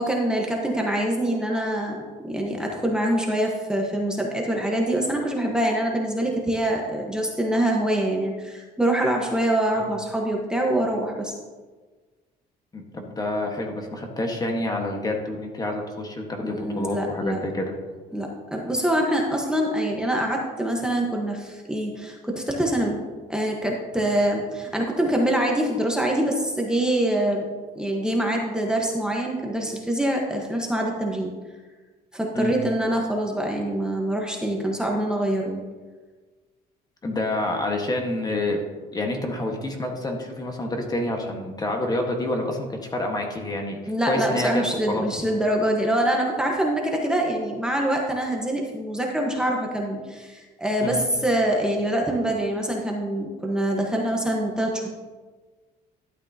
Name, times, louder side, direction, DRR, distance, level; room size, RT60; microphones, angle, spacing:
voice 1, 0.0-11.3 16.4-17.4 18.1-23.0 23.3-27.4 27.7-31.3 32.1-35.6 43.9-54.9, right 1 dB, 5° right, -1 dB, 1.2 m, -25 dB
voice 2, 12.7-17.8 32.3-32.5 37.0-38.6 38.9-43.8 44.1-45.0 50.8-51.0, left 1 dB, 25° left, 2 dB, 1.4 m, -28 dB
12.5 x 8.3 x 2.8 m, 1.4 s
cardioid pair, 110°, 17 cm